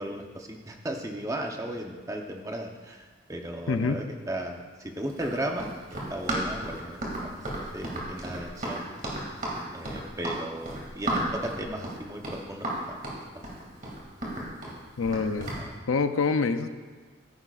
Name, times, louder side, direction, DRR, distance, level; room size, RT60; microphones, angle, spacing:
voice 1, 0.0-5.7 6.1-8.8 9.7-13.1 13.3-13.6 14.6-14.8, right 1 dB, 15° right, 3 dB, 0.8 m, -36 dB
voice 2, 3.7-4.0 15.0-15.5 15.9-16.7, left 4 dB, 90° left, 9 dB, 0.6 m, -26 dB
Run, 5.1-15.6, right 1 dB, 40° right, 2.4 m, -33 dB
14.5 x 11.0 x 2.5 m, 1.4 s
head